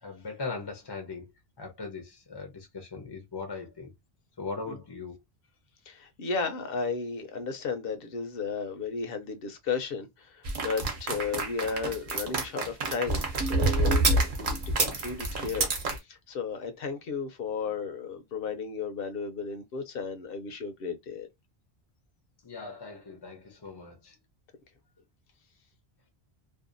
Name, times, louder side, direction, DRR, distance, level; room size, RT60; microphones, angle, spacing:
voice 1, 0.0-1.3 1.6-3.9 4.4-5.2 22.4-24.2, left 4 dB, 35° left, 0.4 m, -39 dB
voice 2, 5.9-21.3, left 5 dB, 70° left, 0.8 m, -34 dB
sound 1, 10.4-16.0, right 2 dB, 55° right, 0.9 m, -27 dB
2.6 x 2.2 x 2.5 m
omnidirectional pair, 1.1 m